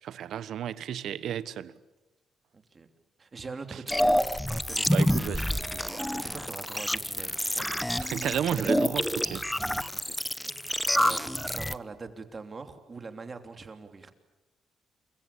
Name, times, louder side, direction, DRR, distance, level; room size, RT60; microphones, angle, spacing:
voice 1, 0.0-1.7 4.1-4.2 4.9-5.4 8.0-9.4 11.0-11.1, right 9 dB, 70° right, 1.3 m, -32 dB
voice 2, 2.5-2.9 3.2-7.7 9.9-10.2 10.5-14.1, right 4 dB, 35° right, 3.0 m, -43 dB
sound 1, 3.9-11.7, left 1 dB, 5° left, 0.9 m, -28 dB
29.0 x 23.0 x 8.6 m
cardioid pair, 90°, 0 cm